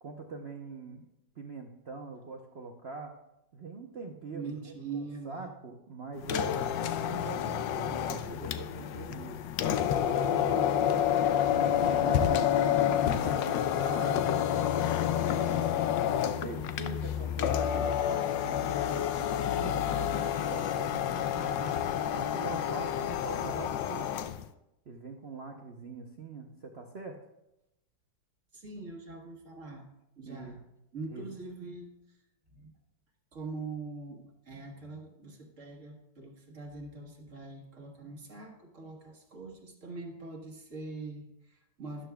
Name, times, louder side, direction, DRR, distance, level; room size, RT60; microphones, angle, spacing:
voice 1, 0.0-1.0 1.4-3.1 3.5-9.4 9.7-14.3 15.2-15.8 16.1-21.7 22.1-24.1 24.9-27.2 30.3-30.5 31.1-31.2, right 3 dB, 60° right, 2 dB, 0.6 m, -43 dB
voice 2, 4.3-5.5 28.5-29.9 30.2-30.6 30.9-31.9 32.5-32.7 33.3-42.1, right 3 dB, 40° right, 2 dB, 1.6 m, -43 dB
sound 1, 6.2-24.4, left 9 dB, 75° left, 1.2 m, -29 dB
12.5 x 11.5 x 2.3 m, 0.87 s
omnidirectional pair, 2.1 m